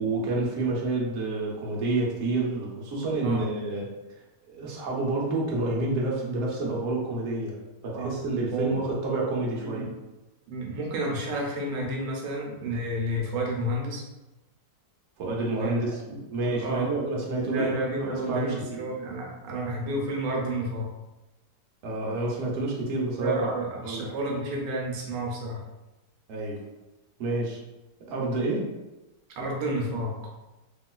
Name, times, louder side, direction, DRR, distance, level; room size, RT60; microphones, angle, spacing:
voice 1, 0.0-3.9 4.5-7.6 7.8-9.9 15.2-16.0 16.3-18.9 21.8-23.5 23.8-24.2 26.3-26.6 27.2-27.6 28.1-28.7, right 2 dB, 60° right, -3 dB, 1.0 m, -29 dB
voice 2, 8.5-8.8 9.6-9.9 10.5-14.0 15.6-16.9 17.4-20.9 23.2-25.6 29.4-30.3, right 1 dB, 85° right, -1 dB, 1.3 m, -31 dB
3.0 x 2.9 x 2.2 m, 1.0 s
omnidirectional pair, 1.9 m